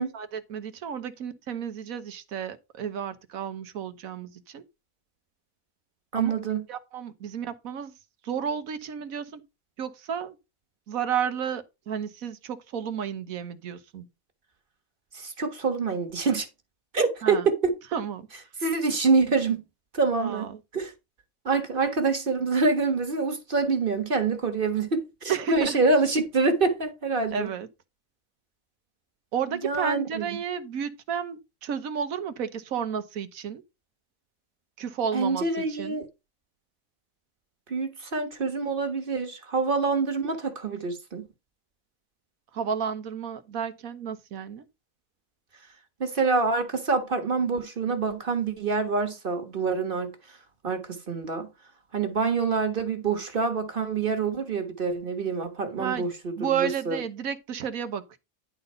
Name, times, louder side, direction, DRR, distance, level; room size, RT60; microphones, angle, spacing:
voice 1, 0.0-4.6 6.1-6.4 6.7-7.9 8.2-9.4 9.8-10.4 10.9-14.1 17.2-17.5 17.9-18.3 20.2-20.6 25.3-25.8 27.3-27.7 29.3-33.6 34.8-36.0 42.5-44.6 55.8-56.1 56.4-58.2, right 7 dB, 85° right, 1.4 m, -32 dB
voice 2, 6.1-6.6 15.1-16.5 16.9-17.7 18.6-19.6 19.9-20.9 21.4-27.5 29.5-30.4 35.1-36.1 37.7-41.3 46.0-50.1 50.6-51.5 51.9-57.0, right 4 dB, 40° right, 1.5 m, -26 dB
11.0 x 3.9 x 5.5 m
omnidirectional pair, 1.4 m